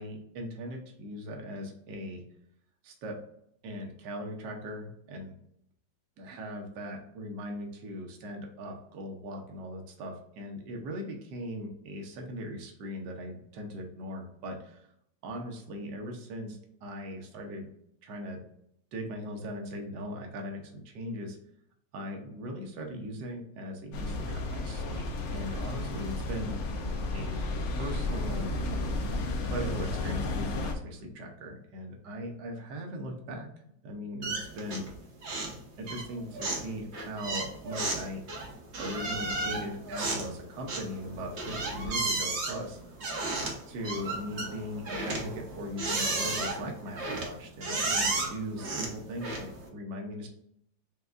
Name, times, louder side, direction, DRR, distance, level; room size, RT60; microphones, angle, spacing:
voice 1, 0.0-2.2 2.8-3.2 3.6-5.3 6.2-14.8 15.2-17.7 18.0-18.4 18.9-21.4 21.9-26.6 27.1-28.5 29.5-33.5 33.8-34.9 35.8-38.2 38.8-42.8 43.7-50.3, equal, 65° right, 2 dB, 1.4 m, -39 dB
sound 1, 23.9-30.7, left 2 dB, 80° left, 0.6 m, -32 dB
sound 2, 34.2-35.0 35.2-35.6 35.9-49.7, right 2 dB, 50° right, 0.9 m, -33 dB
6.5 x 2.3 x 2.4 m, 0.73 s
omnidirectional pair, 2.1 m